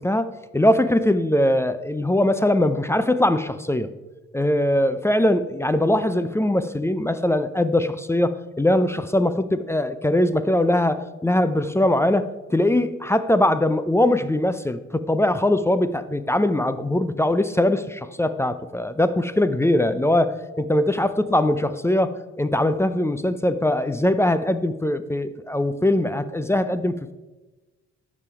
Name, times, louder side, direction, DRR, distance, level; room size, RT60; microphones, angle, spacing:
voice 1, 0.0-3.9 4.3-27.1, left 1 dB, 10° left, 12 dB, 0.5 m, -21 dB
11.5 x 7.2 x 4.8 m, 1.2 s
cardioid pair, 90°, 30 cm